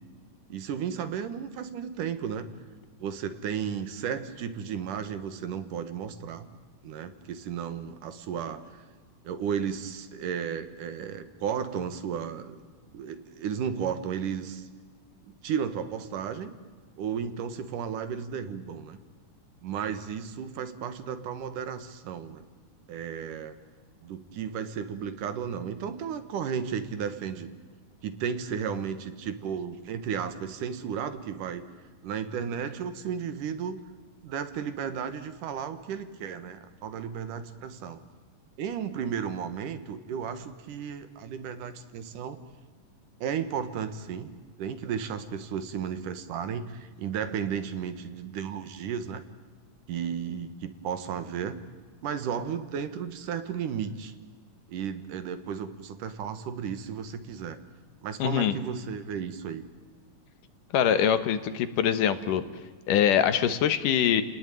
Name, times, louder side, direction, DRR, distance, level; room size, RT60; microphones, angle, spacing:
voice 1, 0.5-2.5 3.0-6.5 6.8-8.6 9.2-12.6 12.9-14.7 15.2-16.5 17.0-19.0 19.6-22.4 22.9-23.6 24.0-27.5 28.0-31.6 32.0-33.8 34.2-38.0 38.6-42.4 43.2-44.3 44.6-49.2 49.9-51.6 52.0-54.1 54.7-57.6 58.0-59.7, right 7 dB, 75° right, 11 dB, 2.9 m, -34 dB
voice 2, 58.2-58.5 60.7-62.4 62.9-64.2, left 9 dB, 75° left, 12 dB, 2.8 m, -23 dB
30.0 x 19.5 x 9.2 m, 1.5 s
omnidirectional pair, 3.8 m